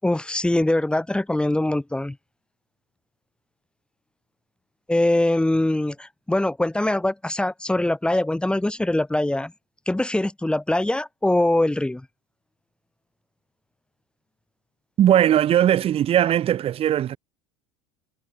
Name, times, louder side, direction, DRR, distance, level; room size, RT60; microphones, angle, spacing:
voice 1, 0.0-2.2 4.9-9.5 9.9-12.1, left 1 dB, 5° left, 5.7 m, -23 dB
voice 2, 15.0-17.2, right 11 dB, 45° right, 5.2 m, -19 dB
hypercardioid pair, 80°, 14 cm